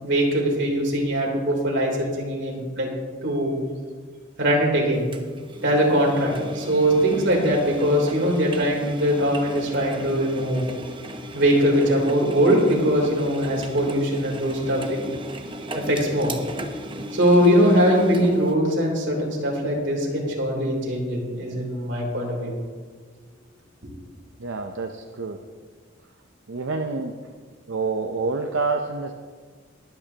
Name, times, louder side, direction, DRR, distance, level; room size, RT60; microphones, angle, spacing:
voice 1, 0.0-2.9 3.2-3.5 4.4-5.0 5.6-10.6 11.3-15.0 15.7-16.3 17.1-22.5, equal, 65° right, -2 dB, 3.4 m, -21 dB
Engine, 5.1-18.5, equal, 25° right, 0.9 m, -36 dB
voice 2, 24.4-25.4 26.5-27.1 27.7-29.1, right 4 dB, 85° right, 4 dB, 0.7 m, -27 dB
22.5 x 8.9 x 2.9 m, 1.5 s
head